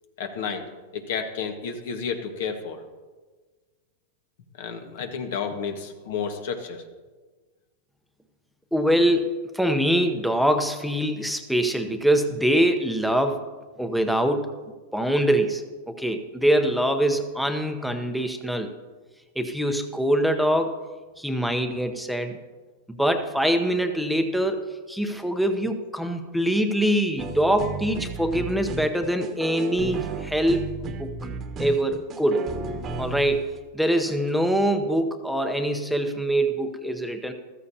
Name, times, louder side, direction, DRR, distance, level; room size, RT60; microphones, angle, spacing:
voice 1, 0.2-0.6 0.9-2.8 4.6-6.8, left 6 dB, 70° left, 5 dB, 1.5 m, -31 dB
voice 2, 8.7-9.3 9.5-13.5 13.8-14.5 14.9-18.7 19.4-20.8 21.2-22.4 23.0-31.1 31.6-32.5 33.0-37.3, right 1 dB, ahead, 6 dB, 0.8 m, -24 dB
sound 1, 27.2-33.6 34.3-34.4, right 4 dB, 30° right, 1.1 m, -33 dB
14.0 x 13.5 x 2.8 m, 1.3 s
hypercardioid pair, 130°, 0 cm